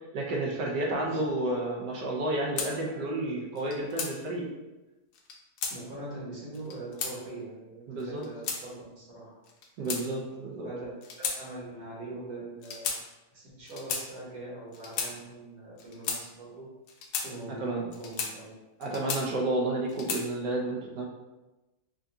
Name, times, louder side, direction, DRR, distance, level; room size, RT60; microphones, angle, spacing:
voice 1, 0.1-4.5 7.9-8.2 9.8-10.7 17.6-17.9 18.8-21.1, right 2 dB, 85° right, -2 dB, 1.5 m, -31 dB
voice 2, 0.8-1.2 5.7-9.4 10.6-10.9 11.2-12.9 13.3-16.7 17.2-18.5, right 2 dB, 60° right, -9 dB, 2.2 m, -42 dB
sound 1, 2.6-2.7 3.6-4.1 5.1-5.8 6.5-7.1 8.0-8.6 9.5-10.4 11.0-11.4 11.7-11.9 12.6-13.0 13.7-14.0 14.7-15.1 15.8-16.2 16.9-17.3 17.9-18.3 18.8-19.5 19.9-20.3, left 5 dB, 75° left, 1.1 m, -34 dB
5.4 x 2.7 x 2.3 m, 1.1 s
omnidirectional pair, 1.8 m